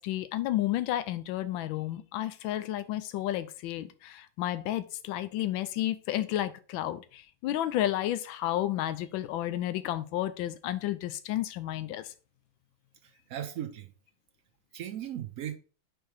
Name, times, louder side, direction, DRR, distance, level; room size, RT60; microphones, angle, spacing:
voice 1, 0.0-12.1, left 13 dB, 80° left, 1.3 m, -32 dB
voice 2, 13.0-13.9 14.7-15.6, right 10 dB, 85° right, 0.7 m, -37 dB
4.7 x 4.5 x 4.6 m
omnidirectional pair, 2.2 m